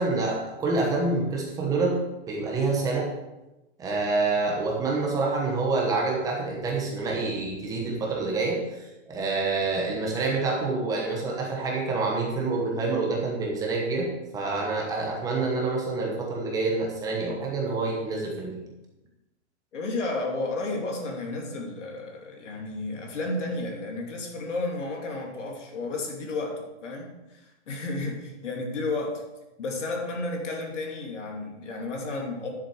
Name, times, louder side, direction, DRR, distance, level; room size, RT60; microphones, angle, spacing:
voice 1, 0.0-3.1 3.8-18.6, right 3 dB, 10° right, -1 dB, 1.1 m, -27 dB
voice 2, 19.7-29.2 29.6-32.5, left 2 dB, 85° left, 1 dB, 2.9 m, -32 dB
10.5 x 7.5 x 4.9 m, 1.0 s
hypercardioid pair, 170°, 35 cm